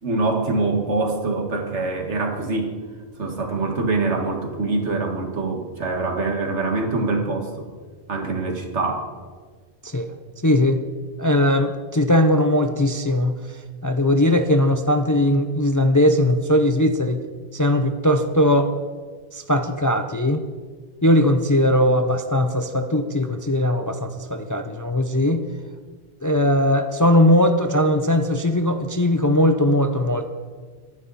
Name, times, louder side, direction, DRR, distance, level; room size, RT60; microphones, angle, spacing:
voice 1, 0.0-2.7 3.2-7.7 8.1-9.1, right 3 dB, 80° right, 3 dB, 2.1 m, -24 dB
voice 2, 10.4-10.8 11.2-13.4 13.8-17.2 17.5-18.8 19.3-20.4 21.0-25.5 26.2-30.3, left 1 dB, 20° left, 7 dB, 0.5 m, -19 dB
23.0 x 9.7 x 4.1 m, 1.5 s
omnidirectional pair, 1.2 m